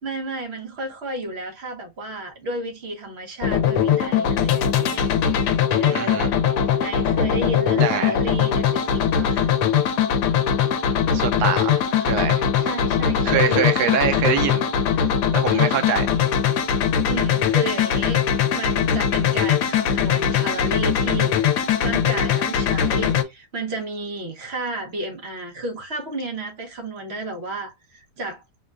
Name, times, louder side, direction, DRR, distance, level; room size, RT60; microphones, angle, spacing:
voice 1, 0.0-5.1 5.7-6.3 6.8-9.5 12.6-14.1 15.5-15.9 17.1-18.2 18.5-28.4, right 2 dB, 45° right, 1.0 m, -32 dB
sound 1, 3.4-23.2, left 8 dB, 80° left, 1.1 m, -21 dB
voice 2, 5.9-6.3 7.8-8.1 11.1-12.5 13.2-14.6 15.3-16.1, right 9 dB, 80° right, 1.1 m, -24 dB
4.4 x 2.2 x 2.4 m
omnidirectional pair, 1.7 m